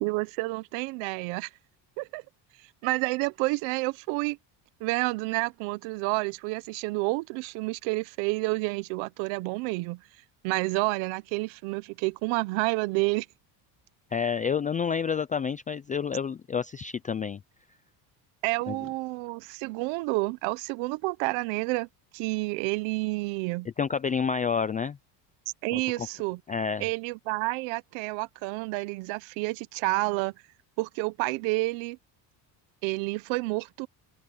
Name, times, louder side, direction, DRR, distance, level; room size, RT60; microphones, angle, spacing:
voice 1, 0.0-1.5 2.0-2.2 2.8-4.4 4.8-10.0 10.4-13.3 18.4-21.9 22.1-23.7 25.6-26.4 26.8-30.3 30.8-32.0 32.8-33.9, right 24 dB, 90° right, 0.9 m, -29 dB
voice 2, 14.1-17.4 18.7-18.8 23.8-25.0 25.7-25.8 26.5-26.8, left 6 dB, 20° left, 0.3 m, -29 dB
open air
cardioid pair, 135°, 45 cm